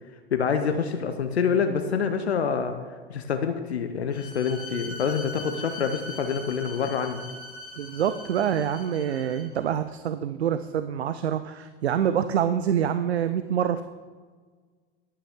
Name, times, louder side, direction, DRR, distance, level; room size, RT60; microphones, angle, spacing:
voice 1, 0.3-2.8 3.1-7.2, left 6 dB, 85° left, 7 dB, 0.7 m, -26 dB
Bowed string instrument, 4.1-9.6, left 1 dB, 30° left, 2.2 m, -41 dB
voice 2, 7.8-13.8, right 9 dB, 85° right, 11 dB, 0.5 m, -26 dB
11.0 x 8.8 x 3.6 m, 1.5 s
hypercardioid pair, 90°, 31 cm